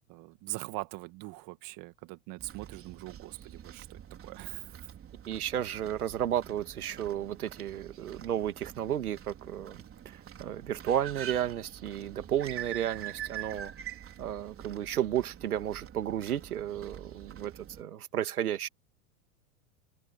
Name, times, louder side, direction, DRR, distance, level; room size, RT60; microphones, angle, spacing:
voice 1, 0.1-4.9, right 23 dB, 50° right, 2.0 m, -42 dB
sound 1, 2.4-17.8, right 11 dB, 30° right, 4.2 m, -46 dB
voice 2, 5.3-9.8 10.1-13.7 14.2-17.5 17.8-18.7, right 10 dB, 90° right, 2.3 m, -33 dB
hypercardioid pair, 105°, 43 cm